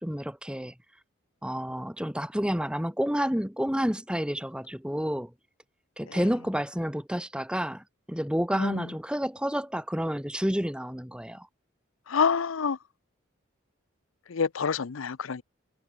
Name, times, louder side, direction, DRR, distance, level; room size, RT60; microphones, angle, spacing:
voice 1, 0.0-0.7 1.4-5.3 6.0-11.5, equal, 5° right, 1.7 m, -30 dB
voice 2, 12.1-12.8 14.3-15.4, left 6 dB, 90° left, 0.6 m, -27 dB
head